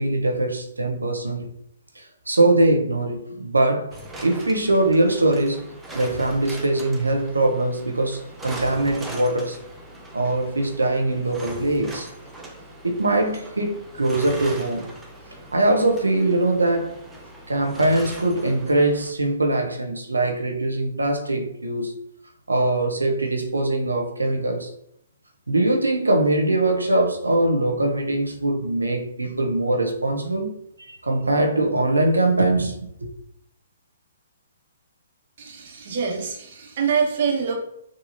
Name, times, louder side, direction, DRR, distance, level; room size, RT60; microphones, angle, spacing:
voice 1, 0.0-1.5 1.9-3.9 4.2-5.7 5.9-9.6 10.1-12.1 12.8-14.9 15.5-16.9 17.5-21.9 22.5-24.7 25.5-30.5 30.8-32.7 33.0-33.1, right 2 dB, 85° right, 0.8 m, -22 dB
sound 1, 3.9-19.1, right 1 dB, 10° right, 0.7 m, -40 dB
voice 2, 35.4-37.5, right 6 dB, 50° right, 1.3 m, -25 dB
6.4 x 2.8 x 2.7 m
figure-of-eight pair, 130°, 0 cm